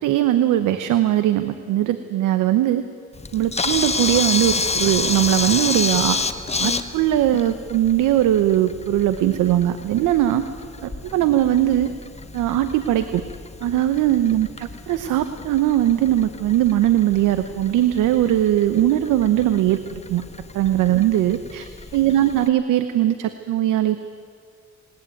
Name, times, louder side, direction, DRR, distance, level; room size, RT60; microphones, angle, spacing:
voice 1, 0.0-2.9 3.3-6.2 6.6-10.5 10.8-11.9 12.3-13.2 13.6-19.8 20.1-20.2 20.5-24.0, right 12 dB, 90° right, 10 dB, 0.9 m, -20 dB
Camera, 3.1-22.5, left 4 dB, 20° left, 1.1 m, -30 dB
19.5 x 19.5 x 9.2 m, 2.1 s
cardioid pair, 90°, 30 cm